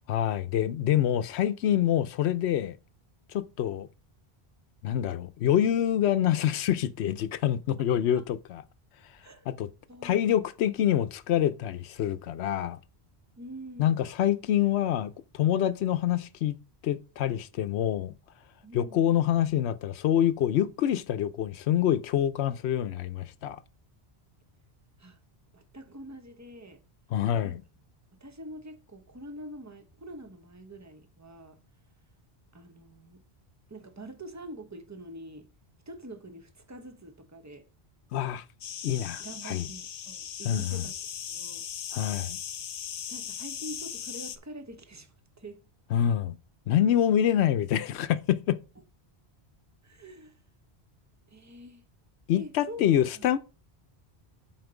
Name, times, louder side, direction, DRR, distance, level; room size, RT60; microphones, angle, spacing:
voice 1, 0.1-2.8 3.3-3.9 4.8-8.6 9.5-9.7 10.0-12.8 13.8-16.5 16.8-18.1 18.7-23.6 27.1-27.6 38.1-38.4 38.8-39.7 40.4-40.8 41.9-42.4 45.9-46.4 46.7-48.6 52.3-53.4, left 10 dB, 90° left, 0.9 m, -26 dB
voice 2, 9.9-10.4 13.4-14.1 18.6-19.1 25.0-25.2 25.5-26.8 27.4-27.6 28.2-31.6 32.5-33.2 33.7-35.5 35.9-37.6 39.2-40.9 41.3-41.7 43.1-45.6 49.8-50.4 51.3-51.8 52.3-53.3, right 1 dB, 15° right, 0.8 m, -45 dB
sound 1, 38.6-44.4, left 8 dB, 60° left, 0.8 m, -38 dB
7.9 x 4.4 x 4.8 m
omnidirectional pair, 1.1 m